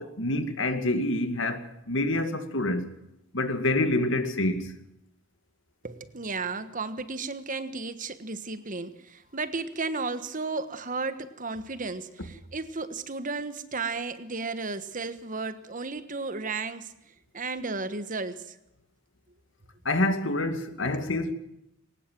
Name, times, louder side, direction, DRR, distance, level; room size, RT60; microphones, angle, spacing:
voice 1, 0.0-2.9 3.3-4.8 19.8-21.3, left 2 dB, 65° left, 2.4 m, -27 dB
voice 2, 5.8-16.9 17.3-18.6 20.9-21.1, right 3 dB, 40° right, 1.4 m, -34 dB
21.5 x 19.0 x 7.6 m
head